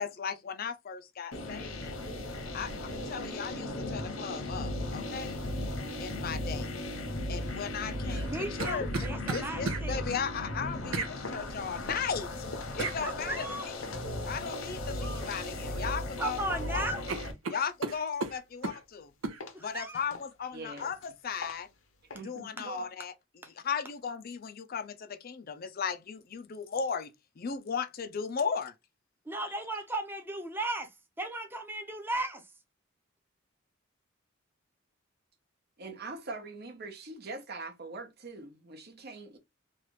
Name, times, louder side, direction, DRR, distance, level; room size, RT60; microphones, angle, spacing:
voice 1, 0.0-2.0 2.5-5.4 6.0-6.7 7.3-8.3 8.6-9.0 9.3-12.3 12.7-13.9 14.2-17.0 17.5-19.1 19.6-21.7 22.2-23.1 23.5-28.7, left 6 dB, 45° left, 0.4 m, -36 dB
sound 1, 1.3-17.3, left 1 dB, 85° left, 1.2 m, -37 dB
sound 2, 8.1-9.8 10.9-11.1 12.8-13.0 15.0-15.3 15.6-16.3 16.6-16.7 17.1-18.8 19.2-19.4, right 3 dB, 85° right, 0.6 m, -35 dB
voice 2, 8.3-10.1 13.0-13.7 16.2-17.0 19.5-20.0 29.3-30.9 31.2-32.4, right 2 dB, 10° right, 0.7 m, -35 dB
sound 3, 10.9-16.1 16.5-18.3 18.6-19.0 19.4-22.2, left 3 dB, 70° left, 0.8 m, -46 dB
voice 3, 20.5-20.9 22.1-22.9 35.8-39.4, right 3 dB, 50° right, 0.8 m, -42 dB
3.2 x 2.4 x 3.0 m
head